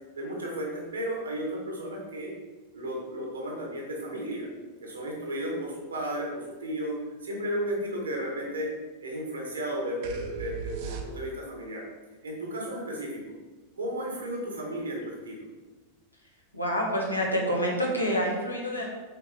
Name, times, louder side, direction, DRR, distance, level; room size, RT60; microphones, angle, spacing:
voice 1, 0.1-2.3 2.7-4.5 4.8-6.9 7.2-8.7 9.0-11.8 12.2-13.2 13.8-15.4, right 1 dB, 75° right, -1 dB, 1.6 m, -34 dB
sound 1, 10.0-11.6, right 6 dB, 50° right, 0.7 m, -37 dB
voice 2, 16.5-18.9, equal, 85° left, -1 dB, 1.3 m, -27 dB
6.6 x 4.5 x 3.4 m, 1.3 s
figure-of-eight pair, 90°, 0 cm